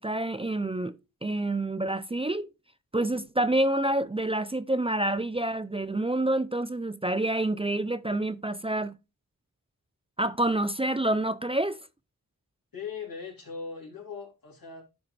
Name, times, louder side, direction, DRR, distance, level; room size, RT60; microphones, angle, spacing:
voice 1, 0.0-2.5 2.9-9.0 10.2-11.8, right 1 dB, 15° right, 0.4 m, -28 dB
voice 2, 12.7-14.8, left 5 dB, 85° left, 3.2 m, -39 dB
11.5 x 4.2 x 3.3 m
cardioid pair, 50°, 34 cm